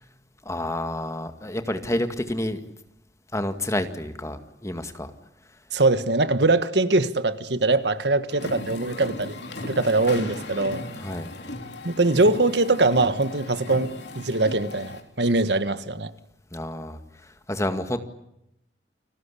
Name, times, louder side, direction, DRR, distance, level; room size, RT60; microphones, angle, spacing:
voice 1, 0.5-2.6 3.3-5.1 11.0-11.3 16.5-18.0, left 1 dB, 15° left, 2.0 m, -29 dB
voice 2, 5.7-9.4 9.6-10.8 11.8-16.1, right 2 dB, 70° right, 1.6 m, -22 dB
sound 1, 8.3-15.0, left 1 dB, 70° left, 3.7 m, -37 dB
30.0 x 21.0 x 8.5 m
head